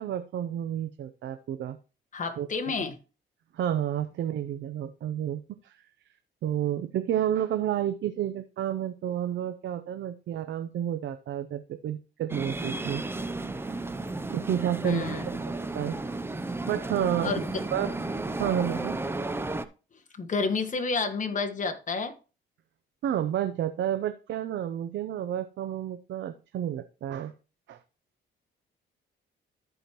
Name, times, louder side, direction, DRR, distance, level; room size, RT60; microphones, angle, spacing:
voice 1, 0.0-1.8 2.4-2.5 3.5-5.8 6.4-13.0 14.3-15.2 15.7-16.2 16.7-17.4 17.7-17.9 18.4-19.0 23.0-27.3 27.7-27.8, right 10 dB, 70° right, 0.6 m, -30 dB
voice 2, 2.1-3.0 14.8-15.4 17.2-17.6 20.2-22.1, left 4 dB, 40° left, 1.5 m, -30 dB
sound 1, 12.3-19.7, right 2 dB, 10° right, 0.6 m, -33 dB
14.0 x 4.9 x 3.0 m
cardioid pair, 90°, 20 cm